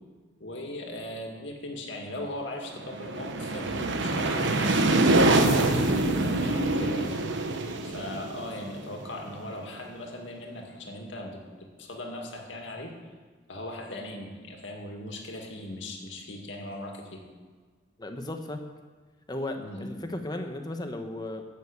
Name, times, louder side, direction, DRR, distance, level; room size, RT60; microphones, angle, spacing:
voice 1, 0.4-7.2 7.8-13.0 13.5-17.2 19.6-20.0, left 1 dB, 80° left, 2 dB, 2.1 m, -39 dB
sound 1, 2.7-9.5, right 2 dB, 75° right, 1.1 m, -25 dB
voice 2, 18.0-18.6 19.3-21.4, left 1 dB, 20° left, 6 dB, 1.0 m, -35 dB
13.5 x 6.6 x 8.4 m, 1.5 s
head